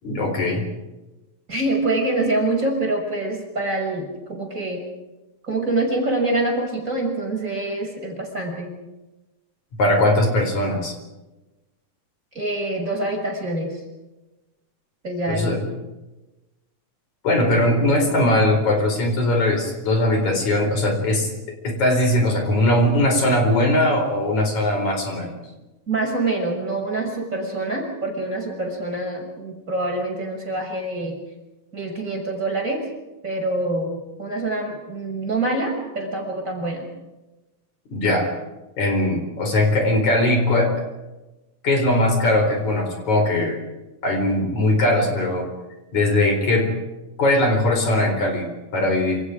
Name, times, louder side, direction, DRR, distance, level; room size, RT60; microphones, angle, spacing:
voice 1, 0.0-0.7 9.8-10.9 15.3-15.6 17.2-21.3 21.6-25.4 37.9-38.3 38.8-40.7 41.6-43.6 44.0-45.5 45.9-46.7 47.2-48.5 48.7-49.2, left 1 dB, 55° left, 4 dB, 5.7 m, -20 dB
voice 2, 1.5-4.8 5.4-8.7 12.3-13.8 15.0-15.6 25.9-31.1 31.7-32.9 33.2-36.9, right 2 dB, 20° right, 1 dB, 6.7 m, -25 dB
28.0 x 27.0 x 5.1 m, 1.1 s
omnidirectional pair, 3.9 m